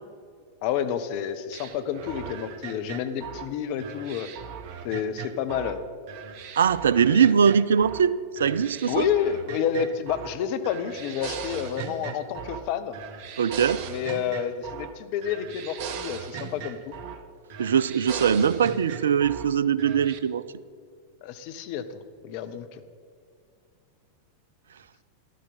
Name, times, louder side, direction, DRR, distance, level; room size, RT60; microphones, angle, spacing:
voice 1, 0.6-4.3 4.8-5.8 7.1-7.2 8.9-13.0 13.9-16.9 21.2-22.8, left 8 dB, 45° left, 10 dB, 0.8 m, -29 dB
sound 1, 1.5-5.8 6.1-8.1 8.4-10.4 10.6-12.7 12.9-15.0 15.2-17.2 17.5-19.5 19.8-20.2, right 7 dB, 45° right, 0.8 m, -38 dB
voice 2, 6.6-9.1 13.4-13.8 17.6-20.4, right 7 dB, 65° right, 18 dB, 0.4 m, -21 dB
13.5 x 11.5 x 4.1 m, 2.2 s
figure-of-eight pair, 90°, 0 cm